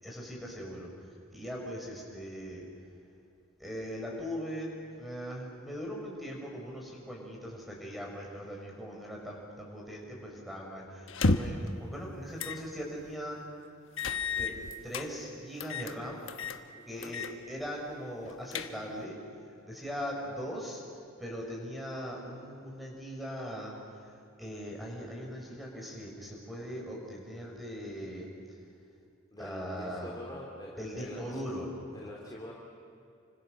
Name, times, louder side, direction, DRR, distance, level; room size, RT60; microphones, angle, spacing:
voice 1, 0.0-0.9 1.3-2.7 3.6-13.4 14.3-14.6 14.8-16.2 16.9-19.2 19.6-20.8 21.2-24.1 24.4-28.3 29.4-30.2 30.8-31.7, equal, ahead, -1 dB, 5.3 m, -40 dB
sound 1, 11.1-11.7 12.4-12.6 13.0-13.1 14.0-15.1 15.6-16.0 16.3-16.6 17.0-17.3 17.7-17.8 18.2-19.0, left 3 dB, 70° left, 1.2 m, -31 dB
voice 2, 16.7-17.1 29.3-31.4 31.9-32.5, left 1 dB, 20° left, -5 dB, 2.9 m, -45 dB
29.5 x 25.5 x 6.7 m, 2.5 s
head